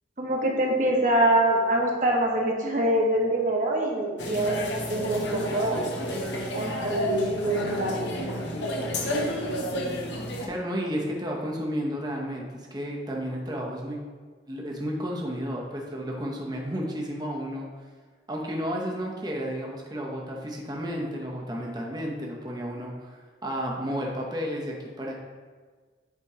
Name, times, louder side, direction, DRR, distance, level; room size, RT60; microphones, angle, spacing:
voice 1, 0.2-4.6 4.9-5.9 6.5-8.5, right 1 dB, 45° right, -1 dB, 1.1 m, -25 dB
sound 1, 4.2-10.5, equal, 80° left, 1.0 m, -31 dB
voice 2, 10.4-12.5 12.7-14.0 14.5-17.7 18.3-25.1, equal, 20° right, -1 dB, 0.8 m, -32 dB
8.2 x 3.0 x 4.8 m, 1.5 s
head